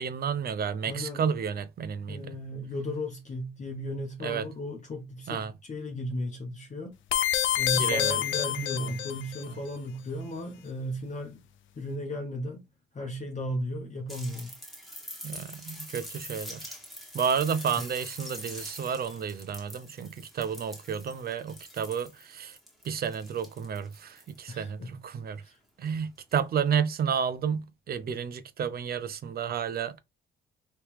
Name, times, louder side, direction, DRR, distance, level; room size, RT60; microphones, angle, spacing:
voice 1, 0.0-2.3 4.2-4.4 5.3-5.5 7.7-8.2 8.5-8.7 15.2-16.7 17.1-22.6 22.8-25.4 25.8-30.0, right 7 dB, 50° right, 0.6 m, -31 dB
voice 2, 0.8-1.3 2.1-7.0 7.6-11.4 11.8-12.7 12.9-14.6 24.5-25.0 25.4-25.6, left 1 dB, 40° left, 1.0 m, -35 dB
sound 1, 7.1-9.4, left 11 dB, 75° left, 0.5 m, -27 dB
sound 2, 14.1-24.5 25.9-26.0, equal, ahead, 1.6 m, -44 dB
3.2 x 2.9 x 3.2 m
cardioid pair, 90°, 20 cm